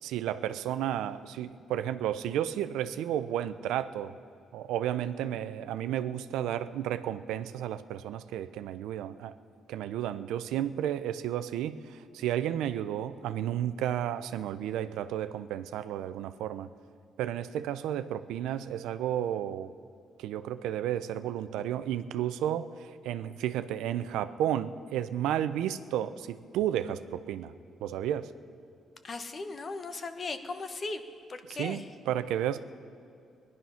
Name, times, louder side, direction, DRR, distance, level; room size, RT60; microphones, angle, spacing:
voice 1, 0.0-4.1 4.5-9.3 9.7-16.7 17.2-19.7 20.2-27.5 27.8-28.3 31.6-32.6, right 11 dB, 90° right, 12 dB, 0.5 m, -32 dB
voice 2, 29.0-31.0 31.3-31.9, left 3 dB, 40° left, 8 dB, 1.1 m, -37 dB
19.5 x 11.0 x 5.7 m, 2.4 s
cardioid pair, 90°, 0 cm